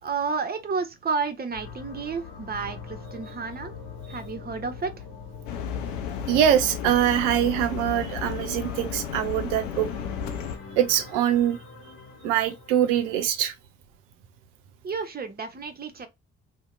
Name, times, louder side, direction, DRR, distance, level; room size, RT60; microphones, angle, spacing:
voice 1, 0.0-3.7 4.1-5.0 14.8-16.1, right 5 dB, 25° right, 0.7 m, -31 dB
sound 1, 1.5-13.4, left 5 dB, 65° left, 1.0 m, -43 dB
sound 2, 5.5-10.6, left 8 dB, 80° left, 0.5 m, -33 dB
voice 2, 6.3-9.9 10.8-11.6 12.2-13.5, right 10 dB, 75° right, 0.5 m, -23 dB
2.7 x 2.1 x 2.4 m
hypercardioid pair, 40°, 37 cm